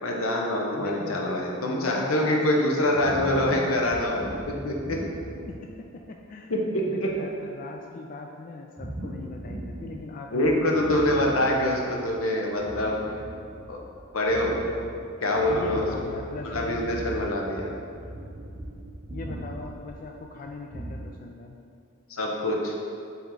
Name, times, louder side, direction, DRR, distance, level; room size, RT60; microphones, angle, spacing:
voice 1, 0.0-5.0 6.5-7.1 10.3-13.0 13.7-13.8 14.1-14.6 15.2-15.9 16.4-17.7 22.1-22.7, left 1 dB, 85° left, -1 dB, 0.9 m, -25 dB
voice 2, 0.7-3.8 5.5-6.5 6.9-12.0 15.4-16.9 19.1-21.6, left 3 dB, 40° left, 1 dB, 0.3 m, -39 dB
sound 1, 2.9-6.0 6.5-6.6 7.0-7.3 8.8-10.2 10.4-12.2 12.5-21.1, right 1 dB, 35° right, 0.6 m, -39 dB
7.1 x 3.5 x 3.8 m, 2.5 s
head